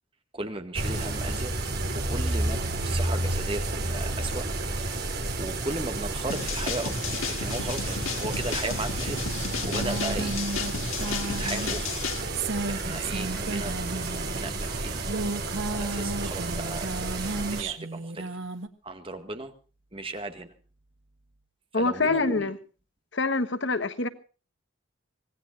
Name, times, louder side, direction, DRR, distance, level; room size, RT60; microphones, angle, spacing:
voice 1, 0.3-1.5 1.9-4.5 5.4-9.2 9.6-10.4 11.1-12.0 12.6-15.0 15.7-18.3 18.8-19.5 19.9-20.5 21.7-22.5, right 2 dB, 25° right, 7 dB, 2.0 m, -36 dB
sound 1, 0.7-17.6, right 2 dB, 50° right, 3.5 m, -31 dB
sound 2, 6.3-12.2, left 5 dB, 90° left, 2.4 m, -33 dB
sound 3, 9.3-14.4 14.9-18.7, right 2 dB, 70° right, 1.7 m, -34 dB
voice 2, 21.7-22.6 23.1-24.1, left 3 dB, 60° left, 11 dB, 1.4 m, -25 dB
25.5 x 18.5 x 2.6 m, 0.36 s
head